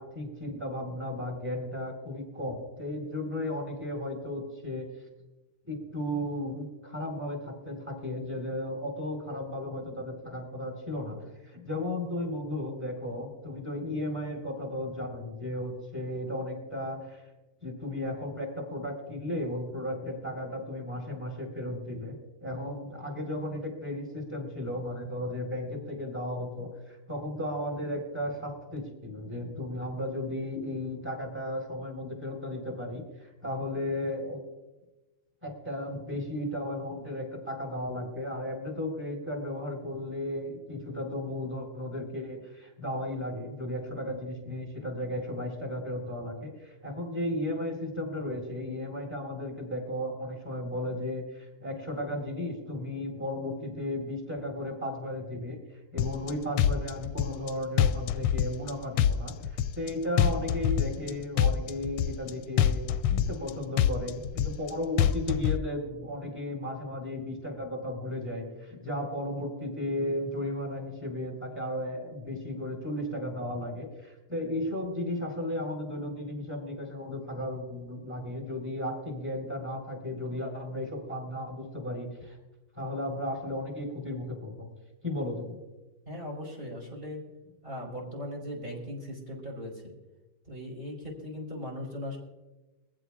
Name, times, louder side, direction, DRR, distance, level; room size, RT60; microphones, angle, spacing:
voice 1, 0.0-4.9 5.7-17.2 17.6-34.4 35.4-55.6 55.9-82.4 82.7-84.7 85.0-85.6, left 1 dB, 5° right, 2 dB, 4.4 m, -35 dB
sound 1, 56.0-56.3 56.6-57.5 57.8-58.7 59.0-59.9 60.2-61.1 61.4-62.3 62.6-63.5 63.8-64.7 65.0-65.6, left 9 dB, 80° left, 1.4 m, -25 dB
voice 2, 86.1-87.2 87.6-89.9 90.5-92.2, left 1 dB, 25° right, -3 dB, 4.7 m, -38 dB
23.0 x 15.5 x 2.5 m, 1.1 s
omnidirectional pair, 2.3 m